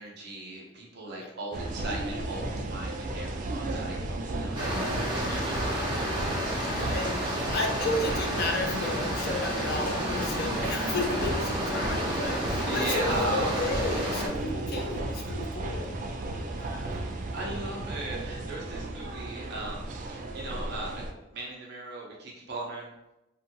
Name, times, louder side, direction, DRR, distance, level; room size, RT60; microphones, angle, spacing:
voice 1, 0.0-5.9 12.7-13.5 16.9-17.0 17.3-21.1 21.3-22.9, right 2 dB, 60° right, -2 dB, 0.7 m, -37 dB
sound 1, 1.5-21.1, right 2 dB, 45° right, 0.3 m, -34 dB
sound 2, 4.5-14.3, equal, 25° right, 0.9 m, -31 dB
voice 2, 5.3-5.7 6.5-15.9 16.5-17.0, left 2 dB, 55° left, 2 dB, 0.4 m, -33 dB
2.6 x 2.5 x 2.6 m, 0.92 s
head